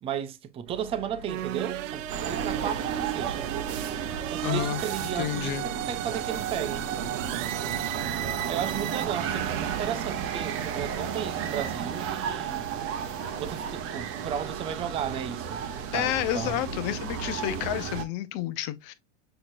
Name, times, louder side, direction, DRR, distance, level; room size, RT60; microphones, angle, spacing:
voice 1, 0.0-3.5 4.3-6.9 8.5-12.7 13.4-16.7, right 9 dB, 15° right, 0.4 m, -34 dB
sound 1, 0.7-9.9, right 6 dB, 65° right, 1.0 m, -45 dB
sound 2, 1.3-9.1, right 12 dB, 80° right, 0.6 m, -35 dB
sound 3, 2.1-18.1, right 8 dB, 35° right, 0.8 m, -33 dB
voice 2, 4.4-4.8 5.2-5.7 15.9-18.9, left 13 dB, 45° left, 0.6 m, -30 dB
6.5 x 2.9 x 2.6 m
supercardioid pair, 135°, 38 cm